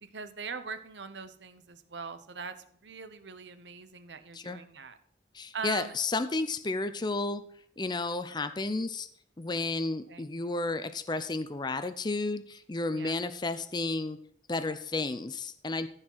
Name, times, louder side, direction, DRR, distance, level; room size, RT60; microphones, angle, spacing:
voice 1, 0.0-5.0 5.5-5.9 10.1-10.2 12.9-13.2, right 5 dB, 85° right, 11 dB, 0.9 m, -41 dB
voice 2, 5.3-7.4 7.8-9.1 9.4-14.2 14.5-15.9, left 3 dB, 25° left, 11 dB, 0.6 m, -32 dB
15.0 x 4.9 x 5.6 m, 0.64 s
head